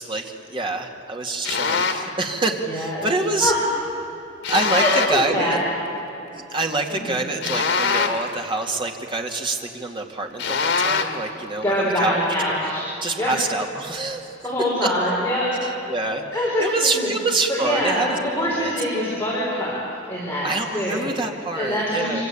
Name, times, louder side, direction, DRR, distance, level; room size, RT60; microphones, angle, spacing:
voice 1, 0.0-3.5 4.5-5.6 6.3-12.2 13.0-14.3 14.8-14.9 15.6-16.2 16.6-18.7 20.4-22.2, right 2 dB, 30° right, 2 dB, 2.4 m, -26 dB
sound 1, 1.4-2.1 4.4-5.3 7.4-8.4 10.4-11.3, left 5 dB, 80° left, 2.1 m, -23 dB
voice 2, 2.7-3.1 3.4-3.6 4.8-5.6 6.9-7.2 11.6-12.8 13.2-13.3 14.4-15.5 16.3-17.1 17.5-19.8 20.1-21.1 21.5-22.2, equal, 15° left, -7 dB, 6.0 m, -24 dB
26.5 x 26.0 x 8.6 m, 3.0 s
head